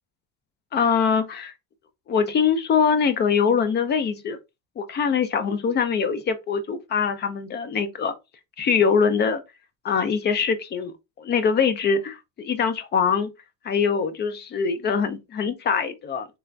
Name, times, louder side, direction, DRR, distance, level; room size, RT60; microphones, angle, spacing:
voice 1, 0.7-1.5 2.1-4.4 4.8-8.1 8.6-9.4 9.8-13.3 13.6-16.3, left 6 dB, 30° left, 0.4 m, -23 dB
3.3 x 2.4 x 3.3 m
cardioid pair, 155°, 34 cm